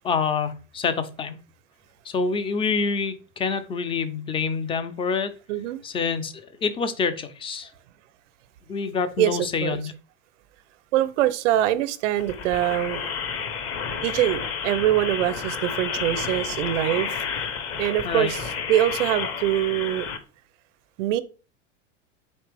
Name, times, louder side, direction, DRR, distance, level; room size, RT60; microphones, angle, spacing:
voice 1, 0.0-1.4 2.1-5.3 5.8-7.7 8.7-9.9 18.0-18.3, left 5 dB, 15° left, 0.3 m, -26 dB
voice 2, 5.5-5.8 9.2-9.8 10.9-13.1 14.0-17.2 17.8-20.1 21.0-21.2, right 13 dB, 70° right, 0.6 m, -24 dB
sound 1, 12.2-20.2, left 6 dB, 35° left, 0.7 m, -31 dB
4.3 x 2.9 x 3.3 m
hypercardioid pair, 90°, 39 cm